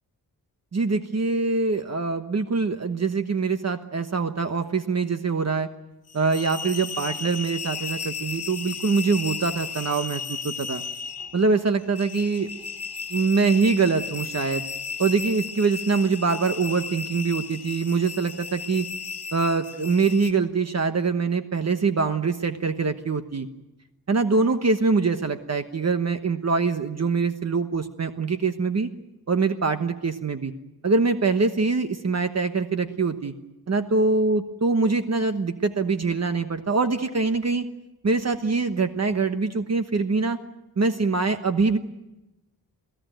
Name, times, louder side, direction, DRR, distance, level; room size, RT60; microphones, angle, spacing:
voice 1, 0.7-5.7 6.1-10.8 11.3-12.5 13.1-14.6 15.0-18.9 19.3-23.5 24.1-28.9 29.3-30.5 30.8-33.3 33.7-37.7 38.0-40.4 40.8-41.8, right 4 dB, 45° right, 8 dB, 1.2 m, -24 dB
sound 1, 6.1-20.3, left 5 dB, 90° left, 1.5 m, -35 dB
29.0 x 17.0 x 9.1 m, 0.98 s
wide cardioid pair, 135°, 37 cm